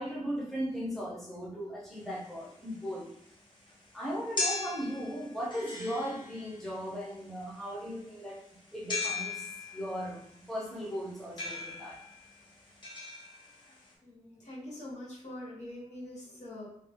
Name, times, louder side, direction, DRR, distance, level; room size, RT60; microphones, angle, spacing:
voice 1, 0.0-3.1 3.9-8.4 8.7-10.2 10.5-12.0, equal, ahead, -5 dB, 0.8 m, -37 dB
sound 1, 2.0-13.9, left 3 dB, 40° left, 0.7 m, -39 dB
voice 2, 14.0-16.7, left 1 dB, 70° left, -5 dB, 1.2 m, -44 dB
3.1 x 2.4 x 3.4 m, 0.71 s
wide cardioid pair, 175°, 12 cm